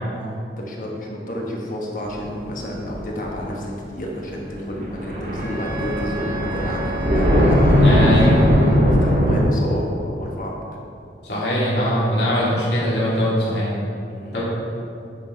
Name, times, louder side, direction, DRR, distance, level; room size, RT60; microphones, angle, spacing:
voice 1, 0.1-8.4 8.8-10.6 14.1-14.4, equal, 45° left, -2 dB, 1.3 m, -30 dB
sound 1, 2.1-2.7 3.0-3.4 4.2-4.5 4.8-9.4, equal, 45° right, 2.1 m, -18 dB
Wind instrument woodwind instrument, 5.4-9.1, right 2 dB, 10° right, 1.3 m, -34 dB
voice 2, 7.7-8.5 11.2-13.7 14.3-14.4, equal, 65° left, -7 dB, 2.2 m, -21 dB
9.1 x 5.9 x 4.6 m, 2.5 s
head